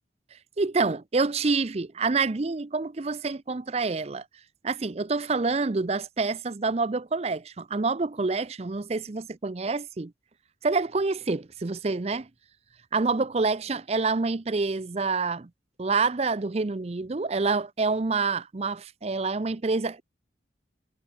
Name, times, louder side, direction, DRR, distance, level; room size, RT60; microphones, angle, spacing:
voice 1, 0.6-4.2 4.6-10.1 10.6-12.3 12.9-15.5 15.8-20.0, right 4 dB, 35° right, 0.5 m, -27 dB
head